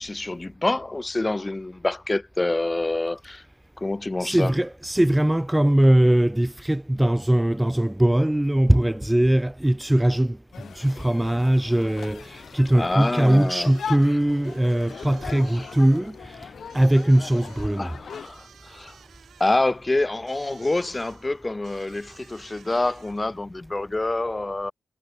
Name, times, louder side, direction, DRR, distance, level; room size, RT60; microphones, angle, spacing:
voice 1, 0.0-3.4 3.8-4.5 12.7-13.7 14.9-15.1 15.5-15.7 17.8-19.0 19.4-24.7, left 2 dB, 20° left, 0.8 m, -27 dB
voice 2, 4.2-18.0, right 1 dB, 10° right, 0.3 m, -21 dB
sound 1, 10.5-18.3, left 7 dB, 65° left, 1.1 m, -40 dB
sound 2, 13.0-23.4, right 7 dB, 70° right, 6.3 m, -54 dB
cardioid pair, 90°, 0 cm